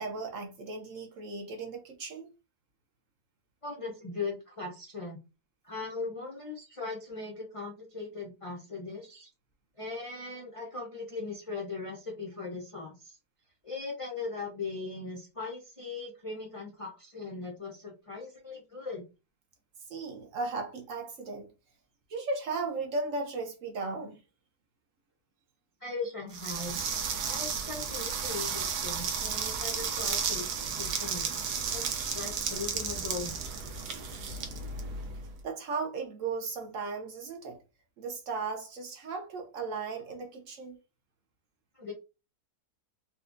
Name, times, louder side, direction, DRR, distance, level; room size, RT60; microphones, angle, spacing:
voice 1, 0.0-2.3 19.9-21.5 22.1-24.2 35.4-37.6 38.0-40.8, right 4 dB, 65° right, 0.9 m, -36 dB
voice 2, 3.6-5.2 5.6-9.3 9.8-13.2 13.6-19.1 25.8-30.5 30.8-31.4 31.7-31.8 32.1-33.3 41.7-41.9, left 4 dB, 45° left, 0.4 m, -39 dB
sound 1, 26.3-35.3, right 6 dB, 85° right, 1.3 m, -33 dB
4.2 x 2.3 x 2.4 m
omnidirectional pair, 1.7 m